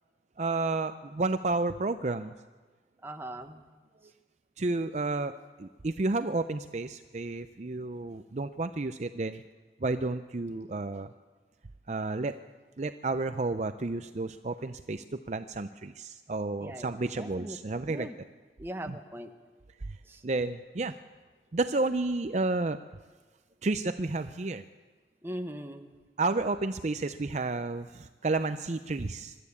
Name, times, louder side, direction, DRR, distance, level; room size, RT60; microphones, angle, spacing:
voice 1, 0.4-2.3 4.6-5.3 5.6-9.4 9.8-11.1 11.9-12.4 12.8-18.1 18.9-19.0 19.9-20.0 20.2-20.9 21.5-22.8 23.6-24.6 26.2-29.4, right 3 dB, 40° right, 10 dB, 0.5 m, -31 dB
voice 2, 3.0-3.6 16.6-17.6 17.9-18.1 18.6-19.3 20.1-20.2 25.2-25.9, right 1 dB, 10° right, 5 dB, 1.1 m, -40 dB
24.5 x 13.0 x 8.5 m, 1.4 s
head